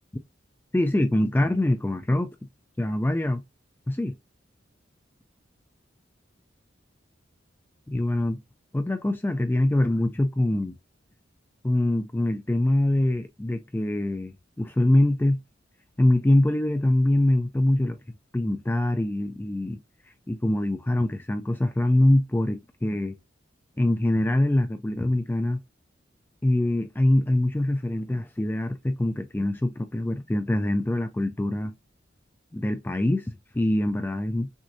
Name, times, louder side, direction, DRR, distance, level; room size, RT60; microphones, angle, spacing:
voice 1, 0.7-2.3 2.8-3.4 3.9-4.1 7.9-8.4 8.7-10.7 11.6-15.4 16.0-18.0 18.3-19.8 20.3-23.1 23.8-25.6 26.4-31.7 32.5-34.5, left 1 dB, 10° left, 0.3 m, -24 dB
6.2 x 2.6 x 2.6 m
head